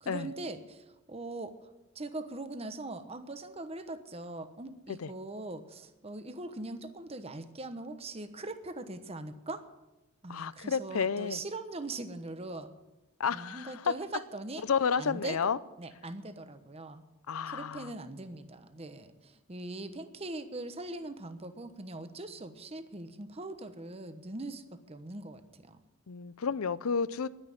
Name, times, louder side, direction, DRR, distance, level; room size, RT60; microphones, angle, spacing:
voice 1, 0.0-1.6 1.9-9.6 10.2-12.7 13.3-14.6 15.0-15.5 15.8-17.0 17.5-25.8, right 2 dB, 30° right, 9 dB, 1.1 m, -41 dB
voice 2, 10.3-11.4 13.2-14.0 14.7-15.6 17.3-17.9 26.1-27.3, left 6 dB, 85° left, 17 dB, 0.6 m, -31 dB
11.5 x 10.0 x 9.8 m, 0.99 s
head